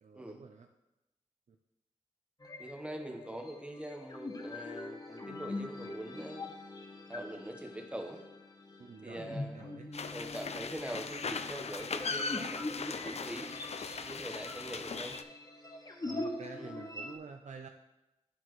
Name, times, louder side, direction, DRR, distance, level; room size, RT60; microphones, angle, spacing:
voice 1, 0.0-0.7 1.5-1.6 3.1-3.2 8.8-9.9 14.7-14.8 16.0-17.7, right 5 dB, 70° right, 4 dB, 0.5 m, -49 dB
sound 1, 2.4-17.2, left 2 dB, 30° left, 0.8 m, -43 dB
voice 2, 2.6-6.5 7.1-8.2 9.0-9.6 10.1-13.5 14.0-15.2 16.6-16.7, right 1 dB, 10° right, 3 dB, 1.1 m, -43 dB
sound 2, 9.9-15.2, left 5 dB, 60° left, 0.4 m, -39 dB
12.5 x 4.2 x 3.1 m, 0.96 s
wide cardioid pair, 70°, 13 cm